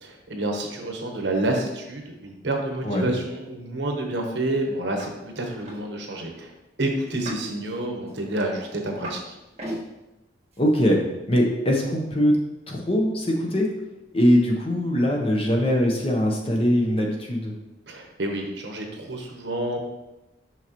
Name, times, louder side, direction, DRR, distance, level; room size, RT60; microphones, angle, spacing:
voice 1, 0.0-6.5 6.8-9.4 17.9-19.8, right 1 dB, 75° right, 1 dB, 1.0 m, -29 dB
voice 2, 2.8-3.1 10.6-11.0 11.3-12.4 12.7-13.7 14.1-17.5, equal, 30° left, 0 dB, 0.9 m, -21 dB
sound 1, 5.0-5.1 5.4-5.8 7.1-7.5 8.1-9.2 9.5-9.8 10.5-10.7, equal, 35° right, 1.7 m, -37 dB
6.0 x 5.5 x 3.0 m, 0.96 s
head